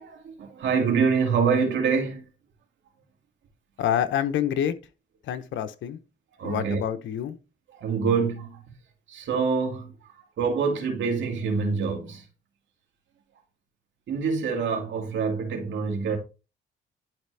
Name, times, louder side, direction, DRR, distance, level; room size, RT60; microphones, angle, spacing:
voice 1, 0.0-2.2 6.4-6.8 7.7-8.6 9.1-9.9 10.4-12.2 14.1-16.2, right 5 dB, 70° right, 2.2 m, -25 dB
voice 2, 3.8-4.7 5.3-6.0 6.4-7.4, left 10 dB, 75° left, 0.8 m, -27 dB
11.0 x 4.3 x 3.3 m
cardioid pair, 90°, 20 cm